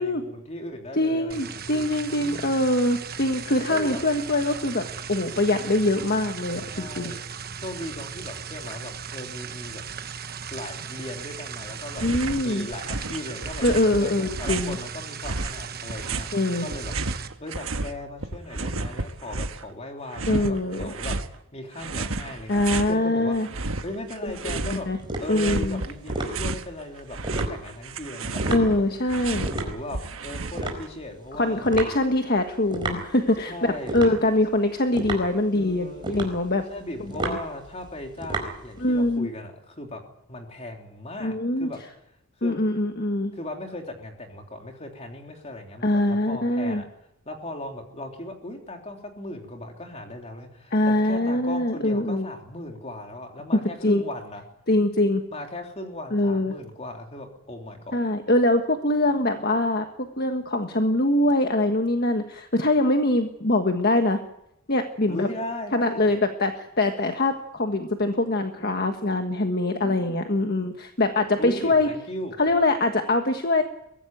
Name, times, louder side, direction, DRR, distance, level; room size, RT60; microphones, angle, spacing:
voice 1, 0.0-1.8 2.1-2.6 3.7-4.0 6.7-7.2 7.6-9.8 10.5-13.6 14.0-16.9 17.4-23.4 23.8-24.9 25.2-28.8 29.4-31.6 33.4-34.2 35.5-36.1 36.7-40.0 40.3-41.8 42.4-42.6 43.3-46.8 47.2-54.4 55.3-58.0 65.1-66.1 69.8-70.3 71.4-72.4, left 1 dB, 30° left, 2 dB, 3.3 m, -37 dB
voice 2, 1.0-7.2 12.0-12.7 13.6-14.8 16.3-16.7 20.3-20.9 22.5-23.5 24.4-25.0 25.3-25.8 28.5-29.5 31.4-36.6 37.2-37.4 38.8-39.3 41.2-41.7 42.4-43.3 45.8-46.8 50.7-52.3 53.8-54.0 54.7-55.2 56.1-56.5 57.9-59.9 60.2-64.2 64.7-65.3 65.7-71.9 72.4-73.6, left 1 dB, 45° left, 6 dB, 1.4 m, -23 dB
sound 1, 1.3-17.3, right 7 dB, 45° right, 1.2 m, -37 dB
sound 2, 11.9-12.4 12.7-14.8 15.2-17.9 18.2-19.7 20.1-21.3 21.8-22.9 23.3-24.9 25.2-26.7 27.0-30.9, right 3 dB, 65° right, 1.3 m, -32 dB
sound 3, 23.8-39.2, right 2 dB, 20° right, 4.5 m, -34 dB
23.0 x 15.5 x 9.2 m, 0.82 s
head